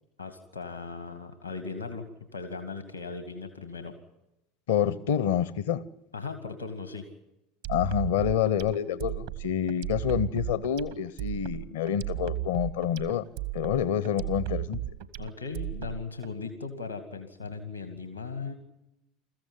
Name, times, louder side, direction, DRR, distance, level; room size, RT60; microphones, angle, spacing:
voice 1, 0.2-4.0 6.1-7.1 15.2-18.5, left 4 dB, 90° left, 1.8 m, -38 dB
voice 2, 4.7-5.8 7.7-13.3 13.5-14.8, left 9 dB, 65° left, 0.8 m, -27 dB
sound 1, 7.6-16.3, right 15 dB, 65° right, 1.1 m, -35 dB
22.5 x 14.5 x 9.7 m
figure-of-eight pair, 75°, 0 cm